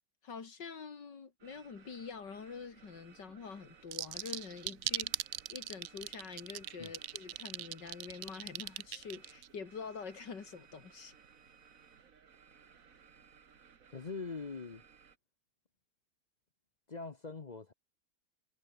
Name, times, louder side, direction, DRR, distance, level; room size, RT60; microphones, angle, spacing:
voice 1, 0.2-5.2 5.5-11.1, left 5 dB, 85° left, 3.1 m, -46 dB
sound 1, 1.4-15.2, right 6 dB, 50° right, 1.9 m, -61 dB
sound 2, 3.9-9.5, right 14 dB, 70° right, 0.9 m, -38 dB
voice 2, 13.9-14.8 16.9-17.7, left 4 dB, 35° left, 0.7 m, -42 dB
omnidirectional pair, 1.9 m